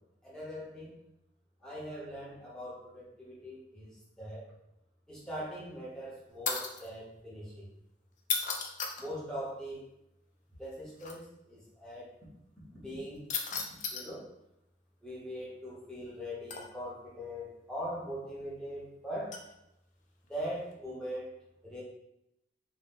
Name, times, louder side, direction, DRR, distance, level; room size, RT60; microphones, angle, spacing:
voice 1, 0.2-1.0 1.6-3.9 4.2-4.5 5.1-7.7 9.0-9.8 10.6-12.1 12.7-13.3 13.9-14.2 15.0-19.4 20.3-21.3 21.6-21.8, equal, 5° left, -7 dB, 0.8 m, -41 dB
sound 1, 6.4-6.9 8.2-9.1 11.0-11.1 13.3-14.1 16.5-16.9 19.3-19.5 20.4-20.7, left 5 dB, 45° left, 0.4 m, -35 dB
2.7 x 2.1 x 3.5 m, 0.83 s
head